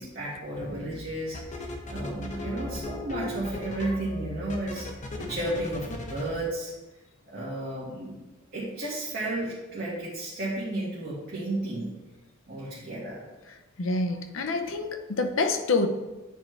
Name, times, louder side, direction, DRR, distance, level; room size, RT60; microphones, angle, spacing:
voice 1, 0.0-4.9 5.2-6.7 7.3-8.2 8.5-11.9 12.5-13.2, right 1 dB, 50° right, -9 dB, 1.8 m, -33 dB
sound 1, 0.6-1.0 1.3-6.3, left 2 dB, 40° left, 0.9 m, -37 dB
voice 2, 13.8-15.9, left 3 dB, 80° left, 7 dB, 0.7 m, -27 dB
9.3 x 4.4 x 3.4 m, 1.1 s
head